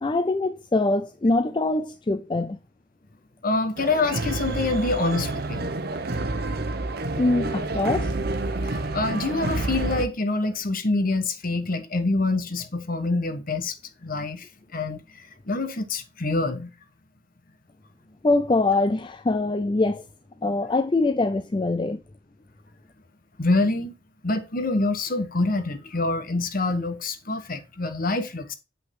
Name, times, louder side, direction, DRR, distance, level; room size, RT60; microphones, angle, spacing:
voice 1, 0.0-2.6 7.2-8.1 18.2-20.1 20.4-22.0, left 2 dB, 25° left, 0.4 m, -23 dB
voice 2, 3.4-5.7 8.6-14.5 14.7-15.0 15.5-16.7 23.4-23.9 24.2-28.5, left 2 dB, 45° left, 1.2 m, -26 dB
sound 1, 3.8-10.1, right 2 dB, 50° right, 0.9 m, -28 dB
7.9 x 5.8 x 3.7 m
head